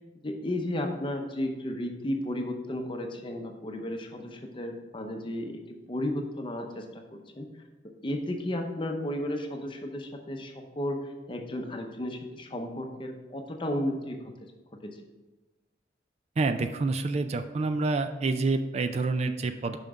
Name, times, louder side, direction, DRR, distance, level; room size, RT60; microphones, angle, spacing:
voice 1, 0.2-5.6 5.9-7.5 8.0-11.0 11.3-14.2 14.8-14.9, left 1 dB, 25° left, 3 dB, 0.7 m, -33 dB
voice 2, 16.4-19.8, right 3 dB, 35° right, 9 dB, 0.3 m, -28 dB
5.7 x 5.2 x 4.8 m, 1.1 s
head